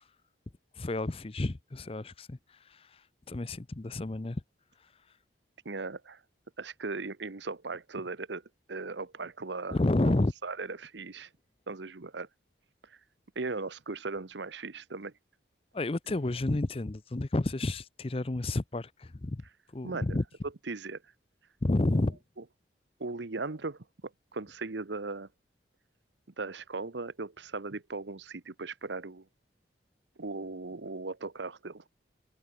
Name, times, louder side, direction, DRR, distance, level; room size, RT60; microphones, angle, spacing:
voice 1, 0.8-2.4 3.3-4.4 9.7-10.3 15.7-19.4 19.7-20.2 21.6-22.2, left 2 dB, 30° left, 0.6 m, -30 dB
voice 2, 5.6-6.2 6.6-8.4 8.7-9.8 10.0-10.1 10.4-11.3 11.7-12.3 12.8-13.0 13.3-15.1 19.8-20.2 20.7-21.0 22.4-22.5 23.0-23.8 24.3-25.3 26.4-29.2 30.2-31.8, right 3 dB, 75° right, 1.0 m, -38 dB
head